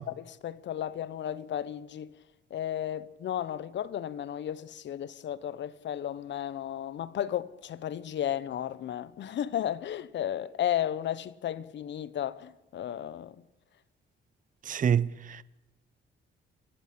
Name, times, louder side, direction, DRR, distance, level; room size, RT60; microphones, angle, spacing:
voice 1, 0.2-2.2 2.5-13.4, left 10 dB, 65° left, 1.0 m, -34 dB
voice 2, 14.7-15.4, right 8 dB, 40° right, 0.7 m, -27 dB
28.5 x 15.0 x 8.6 m
cardioid pair, 90°, 20 cm